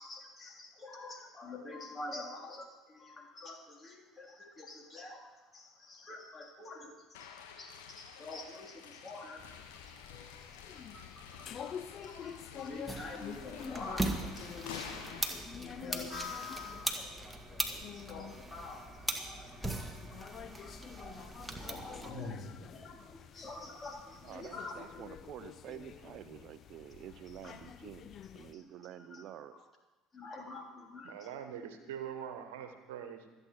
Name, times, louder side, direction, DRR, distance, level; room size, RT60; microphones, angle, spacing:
voice 1, 0.0-5.3 5.5-7.3 7.6-10.1 10.7-14.5 15.6-19.7 20.1-24.8 27.4-27.5 28.5-28.6 29.1-29.2 30.1-31.3, left 3 dB, 30° left, 1 dB, 3.4 m, -47 dB
sound 1, 7.1-15.4, left 7 dB, 70° left, 1.6 m, -50 dB
sound 2, 9.4-28.5, left 8 dB, 45° left, 0.7 m, -49 dB
sound 3, 12.9-22.1, right 1 dB, 5° right, 1.9 m, -40 dB
voice 2, 24.2-29.7, right 10 dB, 50° right, 13 dB, 0.6 m, -49 dB
voice 3, 31.0-33.3, right 8 dB, 70° right, 7 dB, 1.2 m, -43 dB
26.0 x 8.8 x 4.6 m, 1.2 s
figure-of-eight pair, 60°, 0 cm